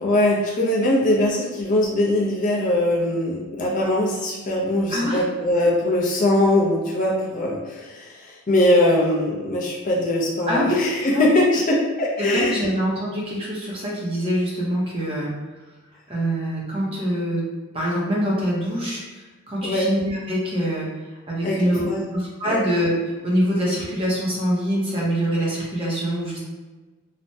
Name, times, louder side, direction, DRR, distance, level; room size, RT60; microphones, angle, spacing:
voice 1, 0.0-12.7 19.6-19.9 21.4-22.1 22.5-22.6, left 1 dB, 35° left, -3 dB, 0.4 m, -21 dB
voice 2, 4.9-5.2 10.5-10.8 11.1-11.2 12.2-15.3 16.1-17.4 17.7-20.9 21.3-21.8 22.1-22.9 23.2-26.4, equal, 25° right, -5 dB, 0.6 m, -24 dB
3.2 x 2.0 x 2.6 m, 1.3 s
head